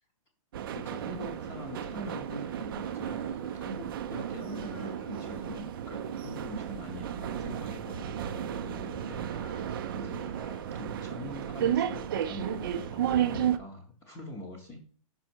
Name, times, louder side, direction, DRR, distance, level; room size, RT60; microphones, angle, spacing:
sound 1, 0.5-13.6, right 10 dB, 40° right, 0.5 m, -33 dB
voice 1, 0.7-3.3 3.5-9.2 9.9-10.3 10.7-14.8, left 2 dB, 15° left, -1 dB, 0.8 m, -43 dB
sound 2, 0.9-10.9, left 3 dB, 85° left, 2.0 m, -56 dB
5.5 x 5.4 x 4.4 m, 0.42 s
hypercardioid pair, 165°, 18 cm